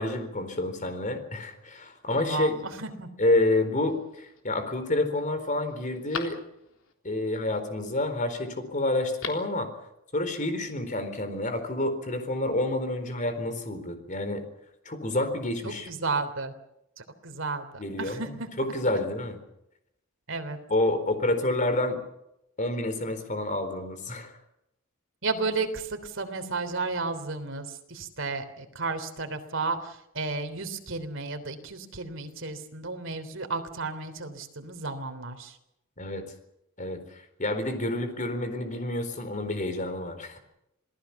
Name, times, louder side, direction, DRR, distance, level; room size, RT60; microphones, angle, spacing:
voice 1, 0.0-2.5 3.2-6.4 7.0-9.7 10.1-14.4 14.8-15.9 17.8-19.4 20.7-22.0 22.6-24.3 36.0-36.3 36.8-40.4, left 2 dB, 35° left, 9 dB, 4.2 m, -29 dB
voice 2, 2.1-3.1 15.6-16.5 17.0-18.5 20.3-20.6 25.2-35.6, right 3 dB, 60° right, 7 dB, 3.3 m, -33 dB
Telephone, 3.8-4.4 4.9-5.0 5.4-6.9 8.9-9.6 9.9-10.0, left 5 dB, 75° left, 3.7 m, -40 dB
27.5 x 18.5 x 7.2 m, 0.82 s
head